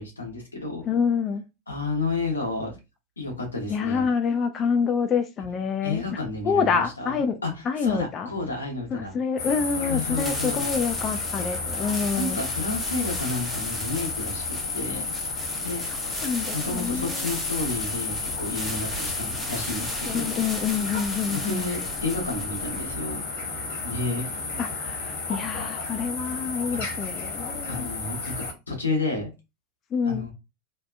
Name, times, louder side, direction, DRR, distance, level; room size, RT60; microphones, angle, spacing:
voice 1, 0.0-0.8 1.7-2.8 3.2-4.1 5.8-9.2 9.7-10.7 12.1-15.1 15.6-15.8 16.5-20.3 21.3-23.3 23.8-24.3 27.7-28.3 28.7-29.3 30.0-30.3, left 3 dB, 90° left, 0.9 m, -31 dB
voice 2, 0.9-1.4 3.7-6.0 6.4-7.4 7.7-8.3 8.9-12.4 16.2-17.3 20.1-21.7 24.6-27.9 29.9-30.3, left 6 dB, 35° left, 0.3 m, -27 dB
sound 1, 9.4-28.5, left 4 dB, 65° left, 1.3 m, -32 dB
sound 2, 10.0-23.1, right 1 dB, 10° right, 0.8 m, -37 dB
2.7 x 2.2 x 2.3 m
figure-of-eight pair, 85°, 0 cm